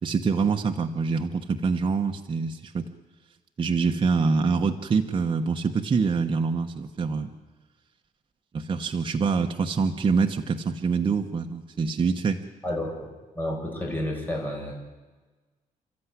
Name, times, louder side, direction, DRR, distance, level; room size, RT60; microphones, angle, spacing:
voice 1, 0.0-2.9 3.6-7.3 8.5-12.4, right 5 dB, 35° right, 4 dB, 1.1 m, -25 dB
voice 2, 12.6-13.1 13.4-14.8, left 1 dB, 10° left, 0 dB, 5.7 m, -30 dB
29.5 x 13.5 x 9.9 m, 1.3 s
wide cardioid pair, 165°, 15 cm